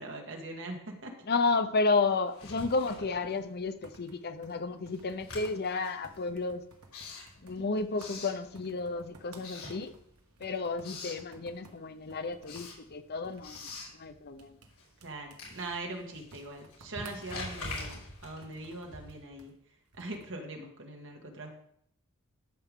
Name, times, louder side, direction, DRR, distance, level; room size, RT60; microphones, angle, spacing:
voice 1, 0.0-1.2 15.0-21.6, right 2 dB, 60° right, 2 dB, 1.9 m, -42 dB
voice 2, 1.3-6.6 7.4-9.9 10.4-14.6, left 3 dB, 45° left, 10 dB, 0.7 m, -32 dB
Writing, 2.3-3.9 4.2-9.0 9.3-10.3 10.6-11.3 11.7-19.4, left 3 dB, 75° left, 4.0 m, -45 dB
sound 1, 2.6-20.4, right 3 dB, 75° right, 1.5 m, -58 dB
13.0 x 6.9 x 3.7 m, 0.69 s
head